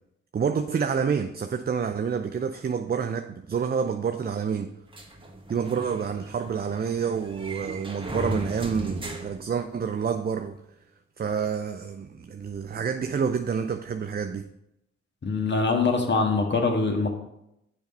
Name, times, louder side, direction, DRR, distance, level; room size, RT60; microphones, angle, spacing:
voice 1, 0.3-4.7 5.5-10.6 11.2-14.4, right 6 dB, 30° right, 0.5 m, -28 dB
sound 1, 4.9-10.2, right 1 dB, 15° right, 1.6 m, -37 dB
voice 2, 15.2-17.1, left 4 dB, 35° left, 1.7 m, -23 dB
7.1 x 5.3 x 5.4 m
supercardioid pair, 50°, 30 cm